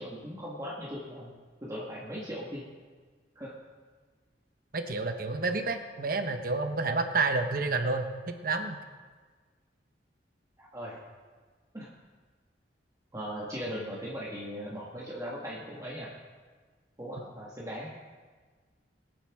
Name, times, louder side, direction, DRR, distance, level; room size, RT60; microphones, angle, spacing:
voice 1, 0.0-1.3 1.6-2.6 3.3-3.5 10.6-11.0 11.7-11.9 13.1-16.1 17.0-17.9, equal, 20° right, -6 dB, 1.6 m, -38 dB
voice 2, 4.7-8.8, right 3 dB, 50° right, 6 dB, 1.0 m, -29 dB
21.5 x 9.1 x 3.6 m, 1.5 s
head